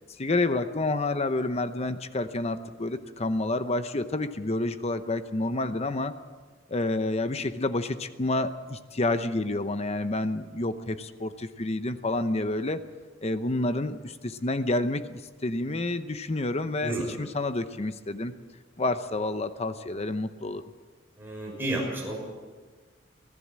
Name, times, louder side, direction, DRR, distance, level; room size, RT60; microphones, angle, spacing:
voice 1, 0.2-6.1 6.7-12.8 13.2-18.3 18.8-20.6, left 2 dB, 35° left, 10 dB, 0.8 m, -29 dB
voice 2, 21.2-22.2, right 1 dB, 10° right, -3 dB, 6.3 m, -31 dB
24.5 x 16.0 x 7.5 m, 1.4 s
head